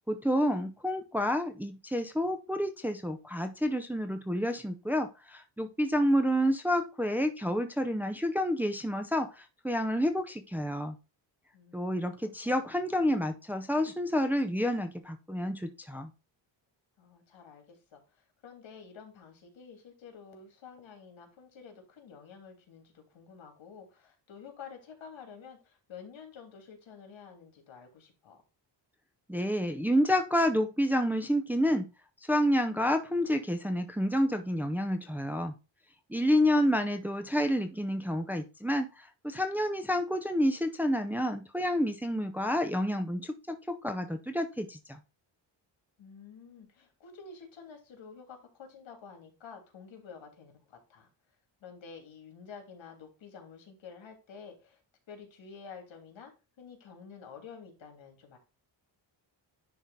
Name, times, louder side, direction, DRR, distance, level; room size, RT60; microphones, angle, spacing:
voice 1, 0.1-11.0 11.7-16.1 29.3-31.9 32.3-35.5 36.1-45.0, equal, 5° right, 5 dB, 0.6 m, -29 dB
voice 2, 11.5-12.1 12.4-13.3 17.0-28.4 36.4-36.7 46.0-51.1 51.6-54.8 55.1-56.3 56.6-58.4, left 6 dB, 80° left, 3 dB, 3.1 m, -50 dB
10.5 x 3.8 x 4.0 m, 0.30 s
wide cardioid pair, 175°, 45 cm